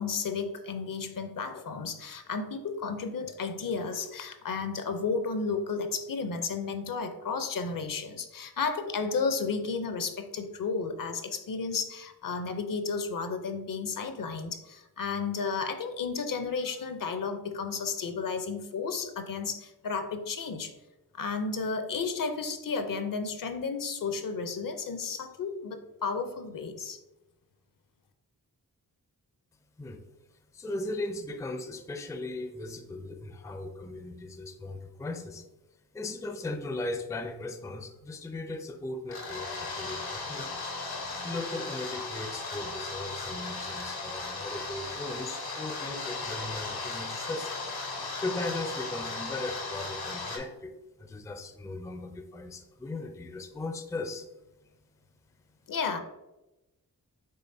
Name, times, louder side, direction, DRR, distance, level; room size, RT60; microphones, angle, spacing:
voice 1, 0.0-20.7 21.1-27.0 55.7-56.0, left 5 dB, 60° left, 8 dB, 0.6 m, -33 dB
voice 2, 30.5-35.5 35.9-40.7 41.2-47.5 48.2-50.7 51.0-54.3, left 2 dB, 10° left, 7 dB, 0.4 m, -37 dB
sound 1, 39.1-50.4, left 3 dB, 85° left, 1.0 m, -36 dB
5.6 x 3.6 x 2.6 m, 1.0 s
wide cardioid pair, 75°, 37 cm